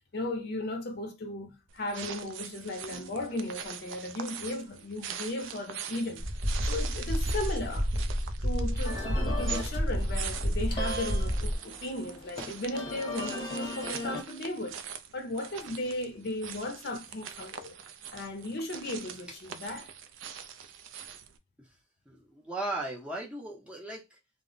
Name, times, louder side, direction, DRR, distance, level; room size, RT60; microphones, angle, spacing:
voice 1, 0.1-6.2 6.6-7.9 8.4-17.8 18.1-19.9, left 1 dB, 55° left, 0.6 m, -36 dB
sound 1, 1.7-21.4, right 8 dB, 75° right, 0.3 m, -43 dB
sound 2, 6.2-11.6, equal, 35° right, 0.8 m, -30 dB
sound 3, 8.8-14.2, left 2 dB, 25° left, 0.8 m, -39 dB
voice 2, 22.1-24.1, right 2 dB, 5° right, 0.6 m, -37 dB
2.1 x 2.0 x 3.7 m
head